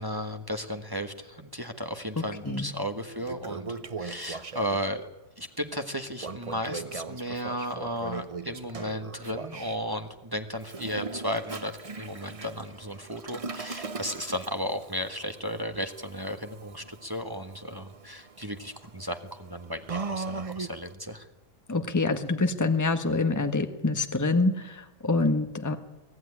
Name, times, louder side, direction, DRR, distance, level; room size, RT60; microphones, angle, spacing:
voice 1, 0.0-5.1 5.4-21.3, equal, 15° right, 6 dB, 1.3 m, -34 dB
voice 2, 2.2-2.7 21.7-25.8, left 3 dB, 10° left, 7 dB, 1.3 m, -26 dB
Toilet flush, 2.5-2.6 3.0-4.9 6.2-9.8 10.6-20.9, right 4 dB, 30° right, 0.6 m, -39 dB
24.0 x 17.0 x 9.8 m, 1.1 s
omnidirectional pair, 1.7 m